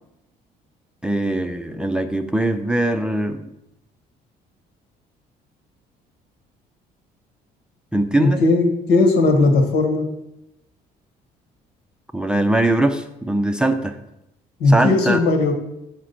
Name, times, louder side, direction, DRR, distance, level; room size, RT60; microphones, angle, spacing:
voice 1, 1.0-3.5 7.9-8.4 12.1-14.0 14.7-15.2, right 1 dB, 5° right, 6 dB, 0.5 m, -21 dB
voice 2, 8.2-10.1 14.6-15.5, left 2 dB, 75° left, 3 dB, 1.8 m, -17 dB
6.4 x 5.1 x 5.7 m, 0.86 s
cardioid pair, 110°, 17 cm